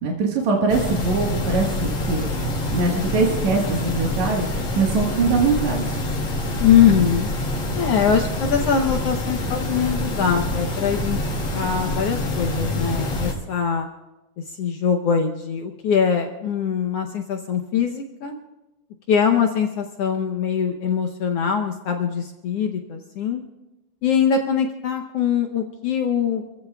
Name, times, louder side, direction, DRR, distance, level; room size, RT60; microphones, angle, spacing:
voice 1, 0.0-2.3 2.7-4.5 4.7-5.8, right 4 dB, 65° right, -2 dB, 2.7 m, -22 dB
sound 1, 0.7-13.3, left 1 dB, 45° left, 2.4 m, -26 dB
voice 2, 6.6-7.3 7.7-13.9 14.5-18.3 19.1-23.4 24.0-26.4, left 7 dB, 75° left, 4 dB, 1.4 m, -22 dB
26.5 x 15.5 x 2.3 m, 0.99 s
omnidirectional pair, 3.8 m